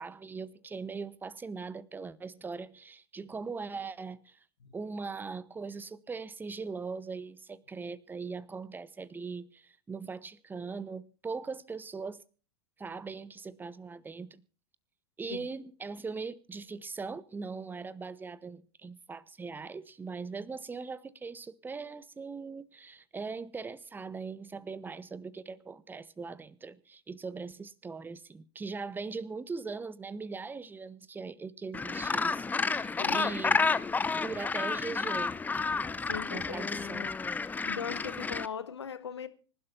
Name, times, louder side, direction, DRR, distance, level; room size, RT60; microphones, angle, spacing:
voice 1, 0.0-4.4 4.7-12.2 12.8-14.4 15.2-33.6 34.2-35.4 36.3-37.1, right 4 dB, 15° right, 0.9 m, -40 dB
Gull seagull, 31.7-38.5, left 4 dB, 10° left, 0.6 m, -31 dB
voice 2, 33.0-33.3 36.1-36.6 37.0-37.1 37.7-39.3, left 7 dB, 80° left, 1.2 m, -39 dB
25.5 x 12.0 x 2.6 m
hypercardioid pair, 90°, 14 cm